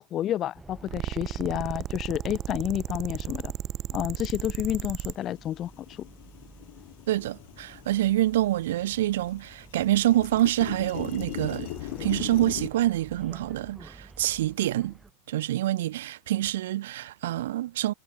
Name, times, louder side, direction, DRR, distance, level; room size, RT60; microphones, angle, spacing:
voice 1, 0.0-3.5 3.9-6.1, left 12 dB, 30° left, 0.4 m, -30 dB
sound 1, 0.5-15.1, right 3 dB, 10° right, 4.7 m, -50 dB
sound 2, 0.8-5.2, right 13 dB, 30° right, 0.4 m, -34 dB
sound 3, 4.9-5.0 5.4-8.4 8.7-12.7, left 20 dB, 65° left, 4.3 m, -39 dB
voice 2, 7.1-11.7 12.0-14.9 15.3-17.9, right 14 dB, 85° right, 1.1 m, -26 dB
supercardioid pair, 160°, 0 cm